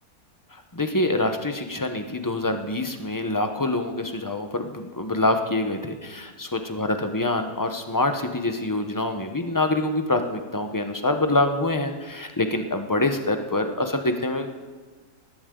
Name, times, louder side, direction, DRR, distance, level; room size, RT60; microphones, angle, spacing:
voice 1, 0.5-14.5, left 2 dB, 20° left, 6 dB, 0.6 m, -25 dB
19.0 x 13.0 x 3.8 m, 1.4 s
omnidirectional pair, 1.6 m